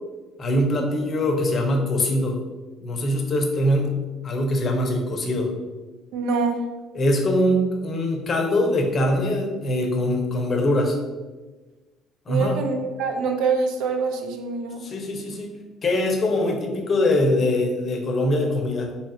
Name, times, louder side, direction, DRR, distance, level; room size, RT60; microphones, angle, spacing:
voice 1, 0.4-2.5 2.8-4.0 4.2-5.5 6.9-11.0 12.3-12.6 14.8-15.6 15.8-19.0, left 1 dB, 35° left, 2 dB, 0.6 m, -23 dB
voice 2, 6.1-6.6 12.3-14.8, right 4 dB, 85° right, 4 dB, 0.4 m, -25 dB
2.9 x 2.4 x 4.2 m, 1.2 s
cardioid pair, 125°, 0 cm